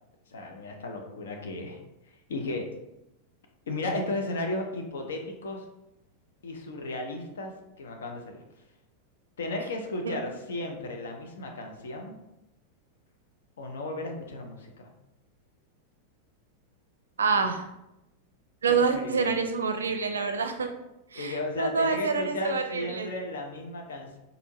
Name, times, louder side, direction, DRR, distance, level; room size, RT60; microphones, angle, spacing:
voice 1, 0.3-1.8 2.1-2.7 3.7-5.7 6.4-8.4 9.4-12.2 13.6-14.9 18.7-19.3 21.2-24.2, left 2 dB, 65° left, 3 dB, 0.6 m, -35 dB
voice 2, 17.2-17.6 18.6-20.7 21.1-23.1, right 5 dB, 70° right, 6 dB, 0.4 m, -27 dB
4.3 x 2.6 x 2.9 m, 0.91 s
figure-of-eight pair, 90°, 0 cm